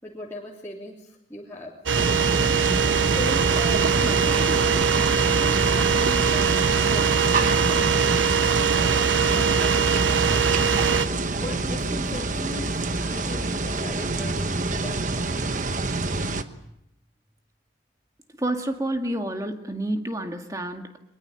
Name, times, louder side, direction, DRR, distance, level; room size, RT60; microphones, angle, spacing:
voice 1, 0.0-1.7 3.0-7.9 8.4-10.8 11.4-15.3, left 1 dB, 15° left, -4 dB, 3.2 m, -38 dB
sound 1, 1.9-16.4, right 2 dB, 45° right, 1.2 m, -27 dB
sound 2, 1.9-11.1, right 6 dB, 85° right, 0.9 m, -22 dB
voice 2, 18.4-21.0, right 1 dB, 20° right, 5 dB, 2.1 m, -29 dB
23.5 x 21.5 x 9.1 m, 0.79 s
head